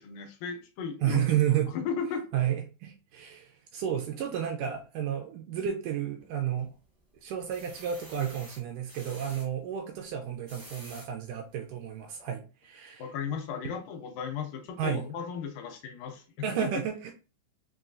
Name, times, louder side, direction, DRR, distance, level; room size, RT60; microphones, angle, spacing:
voice 1, 0.0-2.3 13.0-16.5, left 6 dB, 85° left, 5 dB, 2.3 m, -36 dB
voice 2, 1.0-1.7 2.3-6.7 7.2-13.1 14.8-15.0 16.4-17.1, right 10 dB, 80° right, 4 dB, 1.9 m, -31 dB
sound 1, 6.2-6.8 7.3-9.5 10.2-11.1 11.7-11.8 12.1-12.2, right 1 dB, 50° right, 0.6 m, -49 dB
5.7 x 2.3 x 2.5 m, 0.33 s
omnidirectional pair, 4.0 m